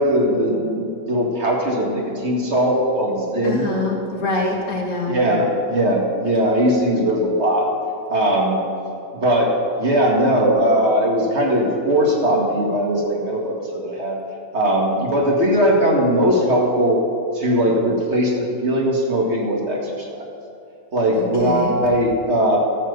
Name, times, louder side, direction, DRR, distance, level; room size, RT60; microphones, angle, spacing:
voice 1, 0.0-3.7 5.1-7.7 8.1-8.6 9.1-9.5 9.8-14.2 14.5-17.0 17.3-20.1 20.9-22.6, equal, 55° right, -2 dB, 2.3 m, -19 dB
voice 2, 3.4-5.2 21.1-21.8, left 2 dB, 70° left, -1 dB, 2.3 m, -25 dB
13.0 x 7.4 x 6.8 m, 2.6 s
omnidirectional pair, 1.4 m